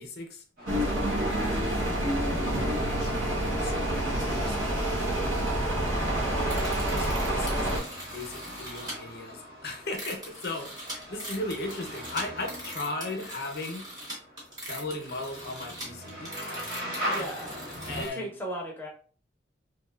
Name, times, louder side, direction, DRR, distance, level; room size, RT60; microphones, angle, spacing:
voice 1, 0.0-1.9 2.5-5.1 5.7-6.2 6.9-13.8 14.7-16.3 17.9-18.3, left 2 dB, 55° left, 3 dB, 0.5 m, -38 dB
sound 1, 0.6-18.0, equal, 50° right, 0.8 m, -42 dB
sound 2, 0.7-7.8, right 1 dB, 90° right, 0.8 m, -28 dB
sound 3, 6.5-8.9 9.7-18.1, right 1 dB, 20° right, 0.8 m, -41 dB
voice 2, 17.0-17.5 17.9-18.9, right 1 dB, 10° left, -2 dB, 0.6 m, -36 dB
2.8 x 2.1 x 2.2 m, 0.42 s
head